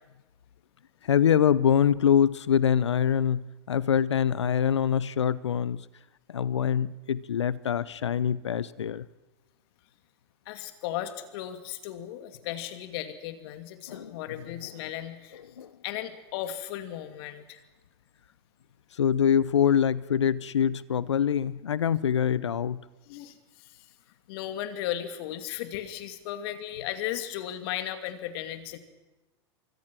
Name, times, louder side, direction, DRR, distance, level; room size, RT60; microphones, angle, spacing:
voice 1, 1.0-5.8 6.3-9.1 13.9-14.2 15.6-15.7 19.0-22.8, left 8 dB, 85° left, 19 dB, 0.8 m, -24 dB
voice 2, 10.5-15.4 15.8-17.6 23.1-23.8 24.3-28.8, left 12 dB, 60° left, 8 dB, 2.6 m, -36 dB
25.0 x 23.5 x 6.2 m, 1.1 s
hypercardioid pair, 100°, 14 cm